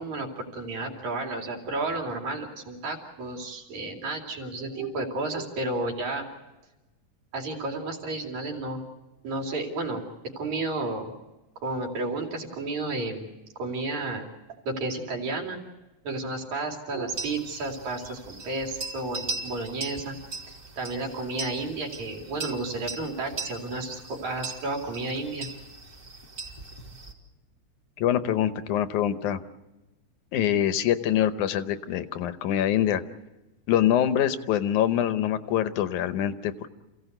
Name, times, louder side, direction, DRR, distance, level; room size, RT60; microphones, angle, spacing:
voice 1, 0.0-6.2 7.3-8.8 9.2-10.0 10.4-11.1 11.6-13.3 13.6-14.3 14.7-15.6 16.0-20.2 20.8-25.5, right 2 dB, 70° right, 2 dB, 4.1 m, -32 dB
sound 1, 17.1-27.1, right 3 dB, 30° right, 3.2 m, -39 dB
voice 2, 28.0-29.4 30.3-33.0 33.7-36.7, left 10 dB, 90° left, 10 dB, 2.5 m, -24 dB
27.5 x 16.5 x 8.0 m, 1.1 s
omnidirectional pair, 3.4 m